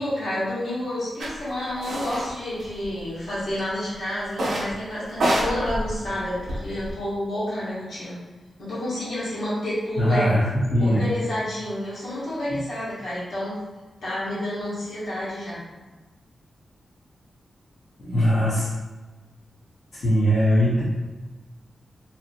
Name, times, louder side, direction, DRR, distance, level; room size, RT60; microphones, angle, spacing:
voice 1, 0.0-8.2 8.6-10.4 10.8-13.5 14.0-15.6 20.6-20.7, left 1 dB, 75° left, -10 dB, 1.3 m, -29 dB
sound 1, 1.2-1.3 1.8-2.3 2.6-3.3 4.3-4.7 5.1-6.9, right 1 dB, 65° right, 0.6 m, -27 dB
voice 2, 10.0-11.0 18.0-18.7 19.9-20.8, equal, 60° left, -13 dB, 0.8 m, -20 dB
2.7 x 2.0 x 2.6 m, 1.2 s
wide cardioid pair, 140°, 0 cm